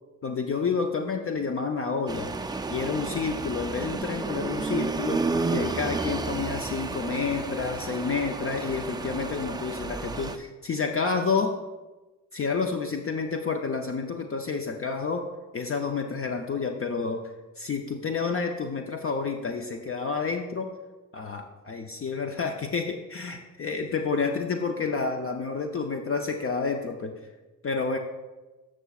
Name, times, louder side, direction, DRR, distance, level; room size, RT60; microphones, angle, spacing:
voice 1, 0.2-2.3 2.7-5.2 5.5-11.6 12.3-15.3 15.5-17.2 17.6-20.7 21.1-27.1 27.6-28.0, left 5 dB, 40° left, 4 dB, 0.5 m, -29 dB
sound 1, 2.1-10.4, right 3 dB, 15° right, 0.3 m, -31 dB
11.0 x 6.1 x 2.3 m, 1.2 s
cardioid pair, 75°, 35 cm